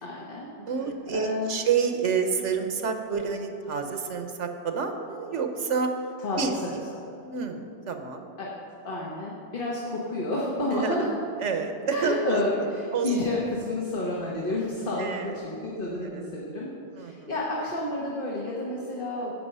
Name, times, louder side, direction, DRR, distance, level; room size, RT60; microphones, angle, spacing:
voice 1, 0.0-0.5 1.1-1.7 6.2-6.8 8.4-8.5 8.8-11.1 11.9-19.3, left 2 dB, 50° left, -4 dB, 1.5 m, -30 dB
voice 2, 0.6-5.9 6.4-6.8 7.2-8.3 10.7-11.1 11.4-12.4 12.9-13.1 15.0-15.4 16.0-16.2 16.9-17.3, right 6 dB, 85° right, 6 dB, 1.3 m, -29 dB
16.0 x 5.5 x 5.5 m, 2.8 s
omnidirectional pair, 1.2 m